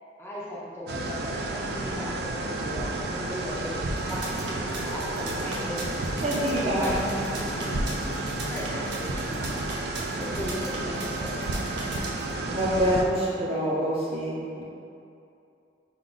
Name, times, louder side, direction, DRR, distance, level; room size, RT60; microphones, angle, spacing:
voice 1, 0.2-5.9 6.6-7.8 8.1-9.6 10.2-11.7, left 1 dB, 15° left, -8 dB, 0.6 m, -37 dB
sound 1, 0.9-13.0, right 2 dB, 60° right, 0.4 m, -31 dB
sound 2, 3.1-8.9, left 1 dB, 65° left, 0.4 m, -41 dB
sound 3, 4.0-12.3, right 3 dB, 85° right, 0.8 m, -39 dB
voice 2, 6.2-7.2 8.1-8.3 12.5-14.6, right 1 dB, 35° right, -7 dB, 0.7 m, -26 dB
4.6 x 2.4 x 3.9 m, 2.6 s
head